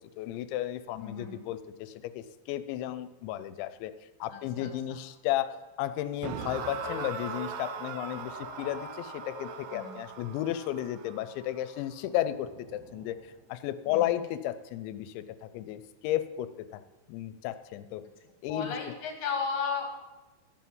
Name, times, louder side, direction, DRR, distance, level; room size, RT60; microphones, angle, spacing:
voice 1, 0.2-3.9 4.2-16.8 17.1-18.1 18.4-18.9, left 13 dB, 85° left, 12 dB, 2.8 m, -34 dB
voice 2, 1.0-1.3 4.3-4.7 9.7-10.0 13.9-14.1 18.5-19.9, left 5 dB, 55° left, 2 dB, 2.6 m, -34 dB
sound 1, 6.2-13.3, right 7 dB, 80° right, 2.2 m, -42 dB
sound 2, 6.7-11.0, left 2 dB, 15° left, 2.6 m, -45 dB
14.0 x 5.7 x 7.5 m, 1.1 s
omnidirectional pair, 5.4 m